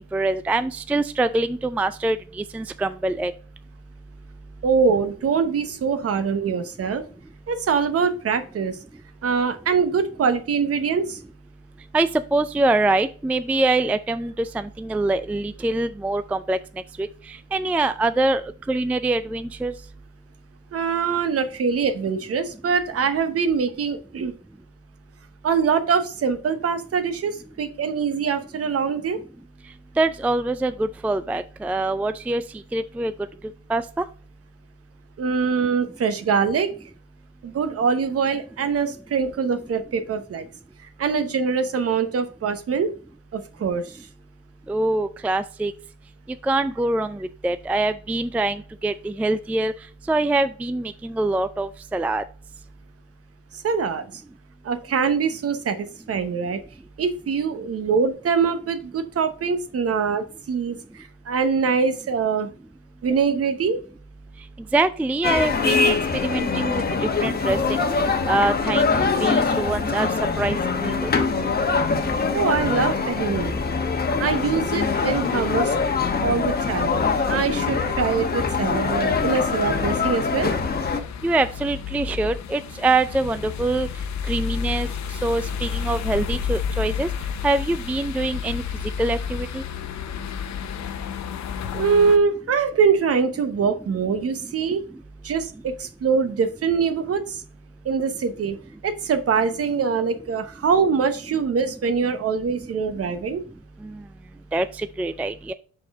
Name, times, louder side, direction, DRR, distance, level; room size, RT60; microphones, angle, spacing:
voice 1, 0.1-3.3 11.9-16.6 17.0-17.1 17.5-18.4 18.7-19.7 30.0-32.4 32.7-33.1 33.7-33.8 44.7-45.7 46.4-49.7 50.1-52.2 64.7-66.8 67.2-67.6 68.3-70.1 70.4-71.1 81.2-83.9 84.3-84.9 85.2-87.1 87.4-88.6 89.0-89.6 104.5-105.5, right 2 dB, 5° right, 12 dB, 0.3 m, -24 dB
voice 2, 4.6-7.0 7.5-8.8 9.2-11.2 20.7-24.3 25.4-29.2 35.2-36.7 37.4-40.5 40.8-42.9 43.3-44.1 53.5-54.2 54.6-56.6 57.0-62.5 63.0-63.8 72.3-73.5 74.2-75.7 76.2-76.9 77.3-80.5 91.7-94.8 95.2-97.4 97.8-98.6 98.8-103.4, right 5 dB, 50° right, 10 dB, 1.0 m, -23 dB
sound 1, 65.2-81.0, left 4 dB, 30° left, 1.1 m, -23 dB
sound 2, 74.7-92.2, left 7 dB, 65° left, 0.9 m, -32 dB
6.0 x 4.9 x 3.5 m, 0.40 s
cardioid pair, 90°, 30 cm